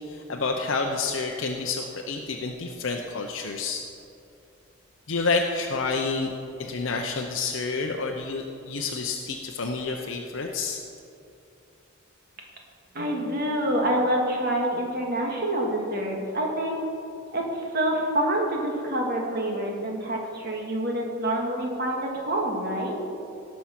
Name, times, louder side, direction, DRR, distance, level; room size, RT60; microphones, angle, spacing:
voice 1, 0.0-3.8 5.1-6.3 6.6-10.8, left 4 dB, 65° left, 2 dB, 0.7 m, -29 dB
voice 2, 12.9-16.8 17.3-23.0, right 1 dB, 45° right, 0 dB, 2.0 m, -27 dB
17.0 x 6.2 x 5.9 m, 2.6 s
head